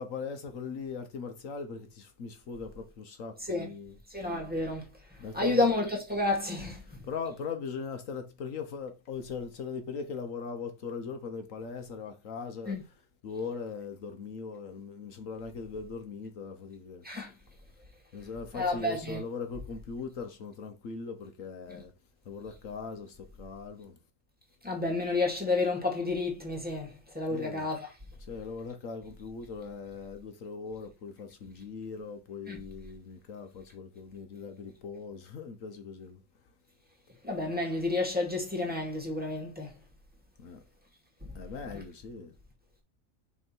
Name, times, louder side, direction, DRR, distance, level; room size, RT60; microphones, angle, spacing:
voice 1, 0.0-4.0 5.2-5.7 7.1-12.8 13.2-17.0 18.1-21.9 22.3-24.0 27.3-27.7 28.3-36.2 40.4-40.6 41.3-42.3, left 5 dB, 75° left, 1.3 m, -40 dB
voice 2, 4.1-4.9 5.3-7.1 12.6-12.8 17.0-17.3 18.5-19.2 21.7-21.8 24.6-27.9 32.5-32.6 37.2-39.7 41.2-41.4 41.7-41.8, left 2 dB, 5° right, 2.1 m, -30 dB
6.4 x 3.6 x 4.4 m
omnidirectional pair, 1.4 m